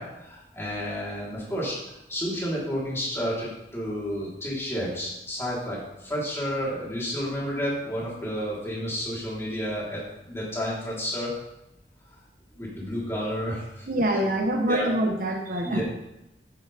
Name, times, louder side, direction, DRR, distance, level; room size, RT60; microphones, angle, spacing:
voice 1, 0.0-11.3 12.6-14.2 14.7-14.9 15.6-15.8, equal, 15° left, -7 dB, 3.8 m, -31 dB
voice 2, 13.9-15.8, right 1 dB, 50° right, 2 dB, 1.1 m, -25 dB
10.0 x 9.8 x 3.5 m, 0.90 s
head